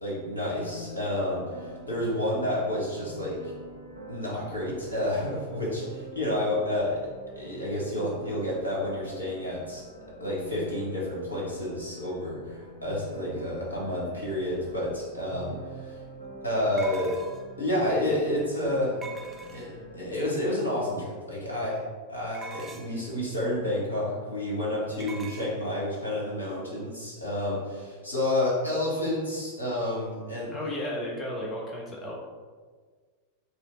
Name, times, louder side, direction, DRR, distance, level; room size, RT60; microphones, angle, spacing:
voice 1, 0.0-3.5 4.1-7.0 7.3-9.8 10.2-16.0 16.4-17.2 17.6-19.0 19.5-30.5, left 1 dB, 75° left, -6 dB, 1.2 m, -30 dB
sound 1, 0.6-20.2, right 1 dB, 85° right, 0.8 m, -45 dB
sound 2, 16.8-17.6 19.0-19.9 22.3-23.1 25.0-25.5, right 3 dB, 20° right, 0.4 m, -42 dB
voice 2, 30.5-32.1, left 1 dB, 20° left, -2 dB, 0.7 m, -33 dB
3.2 x 2.7 x 4.0 m, 1.5 s
figure-of-eight pair, 90°, 0 cm